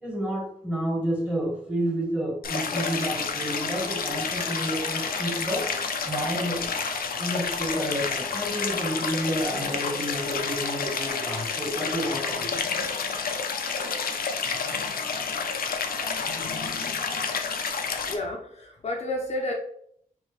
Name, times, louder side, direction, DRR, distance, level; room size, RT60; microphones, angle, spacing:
voice 1, 0.0-6.7 7.2-12.5, equal, 5° right, -2 dB, 1.4 m, -30 dB
Stream, 2.4-18.2, left 5 dB, 90° left, 0.5 m, -29 dB
voice 2, 18.0-19.5, left 1 dB, 45° left, 0 dB, 0.6 m, -31 dB
4.4 x 2.8 x 3.2 m, 0.64 s
wide cardioid pair, 180°, 15 cm